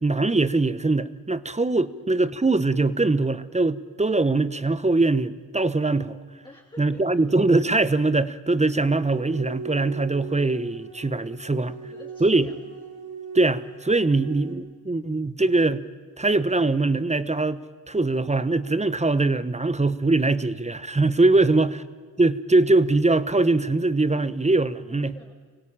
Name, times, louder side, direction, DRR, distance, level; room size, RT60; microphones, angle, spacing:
voice 1, 0.0-6.2 6.8-11.8 12.2-12.5 13.3-15.8 16.2-17.6 17.9-21.8 22.2-25.1, right 2 dB, 20° right, 1.1 m, -22 dB
voice 2, 6.4-7.0 11.8-12.5 24.8-25.3, left 2 dB, 10° left, 3.3 m, -48 dB
sound 1, 8.8-14.5, right 6 dB, 75° right, 4.0 m, -40 dB
25.0 x 17.0 x 8.9 m
supercardioid pair, 50°, 37 cm